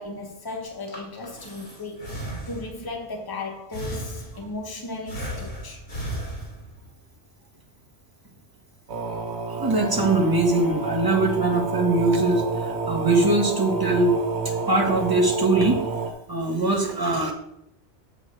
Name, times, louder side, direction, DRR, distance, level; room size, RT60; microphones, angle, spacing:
voice 1, 0.0-2.1 2.5-5.8, left 2 dB, 20° left, 1.3 m, -35 dB
Breathing, 0.6-2.9 3.7-4.6 5.1-6.9, right 1 dB, 50° left, 2.7 m, -35 dB
sound 1, 8.9-16.1, right 4 dB, 65° right, 1.5 m, -29 dB
voice 2, 9.5-14.2 14.7-15.8 16.3-17.3, right 2 dB, 20° right, 1.4 m, -22 dB
7.2 x 6.6 x 4.8 m
omnidirectional pair, 1.2 m